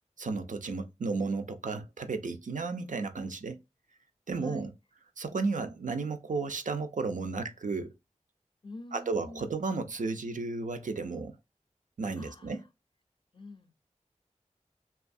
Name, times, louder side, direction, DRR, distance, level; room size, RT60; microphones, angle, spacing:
voice 1, 0.2-3.6 4.3-4.7 5.2-7.9 8.9-11.4 12.0-12.6, right 4 dB, 85° right, 0.4 m, -33 dB
voice 2, 4.4-4.7 8.6-9.5 12.2-12.6 13.3-13.7, left 2 dB, 40° left, 0.4 m, -47 dB
2.6 x 2.4 x 2.4 m
wide cardioid pair, 50°, 13 cm